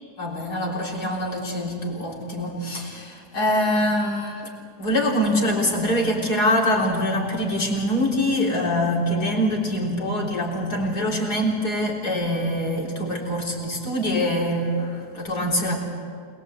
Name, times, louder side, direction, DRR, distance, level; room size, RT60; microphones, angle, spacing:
voice 1, 0.2-4.5 4.8-15.8, left 1 dB, 70° left, -2 dB, 4.2 m, -24 dB
27.0 x 21.0 x 8.0 m, 2.2 s
omnidirectional pair, 1.8 m